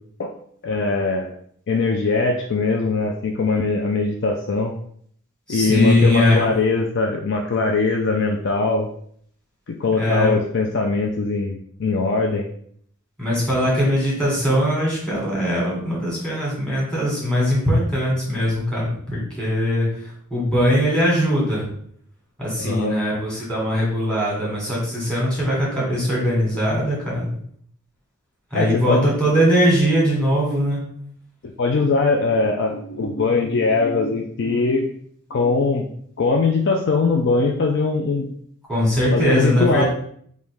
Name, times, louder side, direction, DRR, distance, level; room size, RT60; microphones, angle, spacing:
voice 1, 0.6-1.3 1.7-4.7 5.5-8.9 9.7-12.5 22.6-23.0 28.5-29.1 31.4-34.9 35.3-35.9 36.2-38.3 39.1-39.9, left 3 dB, 55° left, 2 dB, 0.4 m, -21 dB
voice 2, 5.5-6.5 10.0-10.4 13.2-21.7 22.4-27.2 28.5-30.8 38.7-39.9, equal, 5° left, -6 dB, 1.8 m, -20 dB
5.0 x 2.7 x 3.4 m, 0.63 s
head